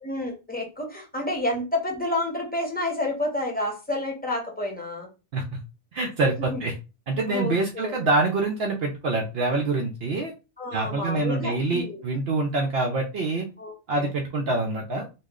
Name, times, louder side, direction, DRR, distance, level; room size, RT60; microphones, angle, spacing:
voice 1, 0.0-5.1 6.5-6.6 7.3-7.9 10.6-12.0 13.6-14.1, left 1 dB, 10° left, 0 dB, 0.8 m, -30 dB
voice 2, 5.9-6.7 7.1-10.3 10.7-13.5 13.9-15.0, right 2 dB, 65° right, 2 dB, 0.8 m, -25 dB
3.0 x 2.3 x 3.6 m, 0.30 s
omnidirectional pair, 1.1 m